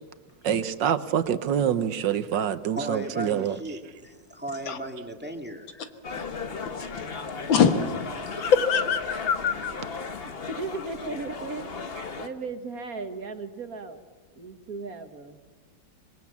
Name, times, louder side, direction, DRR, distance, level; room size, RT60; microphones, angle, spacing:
voice 1, 0.4-3.6, right 9 dB, 70° right, 12 dB, 1.6 m, -26 dB
voice 2, 2.8-5.9, right 1 dB, 5° right, 4 dB, 2.0 m, -36 dB
sound 1, 6.0-12.3, left 4 dB, 35° left, 1.2 m, -36 dB
voice 3, 7.5-7.9 8.4-9.7, left 6 dB, 80° left, 8 dB, 2.2 m, -23 dB
voice 4, 10.6-11.9 12.2-14.0 14.4-15.4, right 4 dB, 50° right, 7 dB, 1.8 m, -36 dB
26.0 x 21.0 x 7.2 m, 1.3 s
omnidirectional pair, 2.1 m